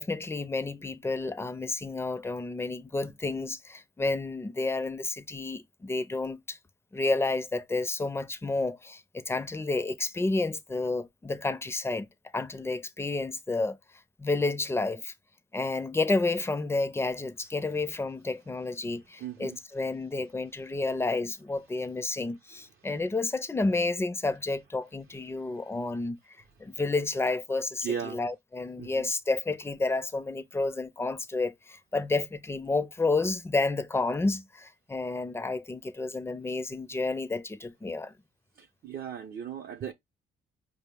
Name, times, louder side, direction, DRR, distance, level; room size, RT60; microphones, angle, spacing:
voice 1, 0.0-6.6 6.9-12.1 12.3-13.8 14.2-15.1 15.5-26.2 26.6-38.1, left 3 dB, 10° left, 0.4 m, -30 dB
voice 2, 19.2-19.6 22.1-22.2 22.5-22.9 25.3-25.8 27.8-28.2 28.8-29.1 38.5-39.9, right 8 dB, 55° right, 0.5 m, -38 dB
4.9 x 2.0 x 3.3 m
cardioid pair, 90°, 20 cm